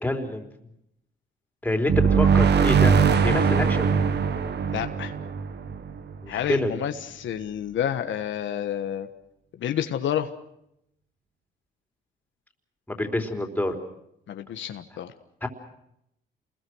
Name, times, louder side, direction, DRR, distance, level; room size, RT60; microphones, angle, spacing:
voice 1, 0.0-0.5 1.6-2.9 3.2-3.9 6.2-6.8 12.9-13.8 15.4-15.5, left 1 dB, 10° left, 4 dB, 4.0 m, -27 dB
sound 1, 1.9-6.5, right 6 dB, 60° right, 1.7 m, -21 dB
voice 2, 4.7-5.1 6.3-9.1 9.6-10.3 14.3-15.1, left 10 dB, 70° left, 7 dB, 1.4 m, -29 dB
28.5 x 21.0 x 6.3 m, 0.78 s
cardioid pair, 90°, 20 cm